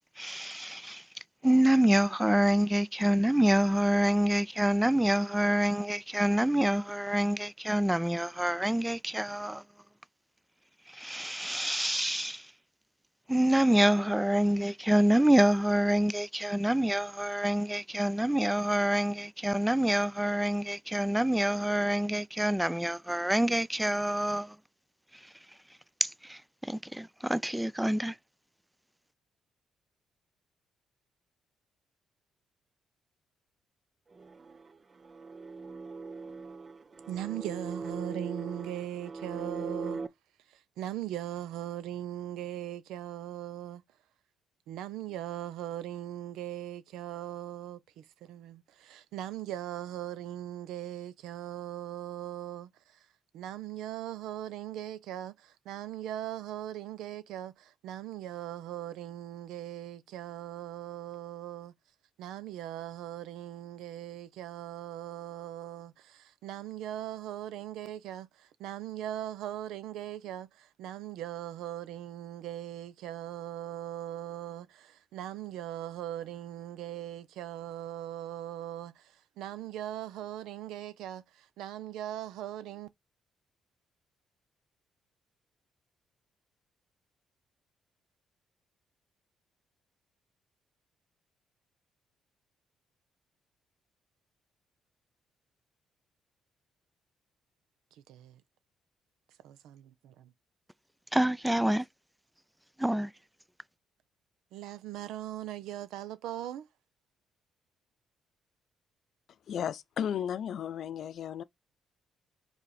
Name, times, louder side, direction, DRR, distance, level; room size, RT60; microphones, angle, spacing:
voice 1, 0.2-1.0 1.4-9.6 10.9-12.4 13.3-24.5 26.0-28.1 101.1-101.8 102.8-103.1, right 1 dB, 5° right, 0.4 m, -26 dB
sound 1, 34.1-40.1, right 4 dB, 35° right, 0.7 m, -40 dB
voice 2, 37.0-40.0 40.5-43.8 44.7-53.1 53.3-61.7 62.2-82.9 98.1-98.4 99.4-100.3 104.5-106.7, right 12 dB, 90° right, 0.7 m, -40 dB
voice 3, 109.5-111.4, left 9 dB, 65° left, 0.6 m, -34 dB
4.9 x 4.1 x 4.9 m
cardioid pair, 90°, 0 cm